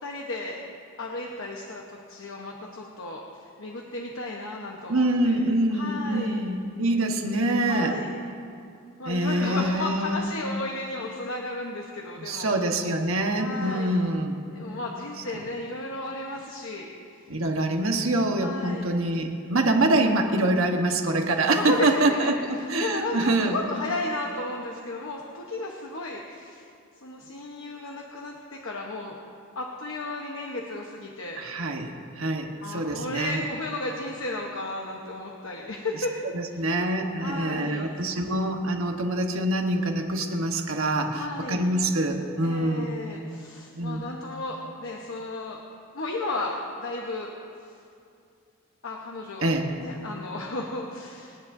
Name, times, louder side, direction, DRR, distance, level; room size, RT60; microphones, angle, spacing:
voice 1, 0.0-0.6 1.0-5.4 5.7-6.4 7.7-8.1 9.0-12.6 13.4-14.0 14.5-17.2 18.4-18.9 21.5-22.3 22.6-26.6 27.0-29.2 29.5-31.4 32.6-36.1 36.5-36.6 37.2-38.2 41.1-41.6 42.4-45.6 45.9-47.3 47.6-47.7 48.8-49.5 49.8-51.4, left 2 dB, 65° left, 0 dB, 1.1 m, -34 dB
voice 2, 4.9-7.9 9.0-10.3 12.2-14.4 17.3-23.6 31.4-33.4 36.3-42.9 43.8-44.0 49.4-49.7, right 1 dB, 65° right, 3 dB, 1.3 m, -25 dB
29.0 x 10.0 x 2.7 m, 2.5 s
head